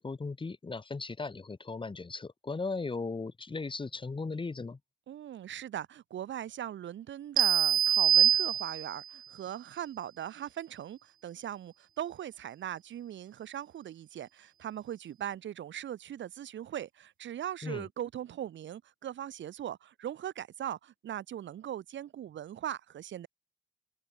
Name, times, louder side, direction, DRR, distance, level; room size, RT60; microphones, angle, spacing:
voice 1, 0.0-4.8 17.6-17.9, left 3 dB, 25° left, 3.1 m, -37 dB
voice 2, 5.1-23.3, right 11 dB, 70° right, 4.7 m, -40 dB
sound 1, 7.4-9.1, right 9 dB, 45° right, 0.5 m, -24 dB
cardioid pair, 90°, 20 cm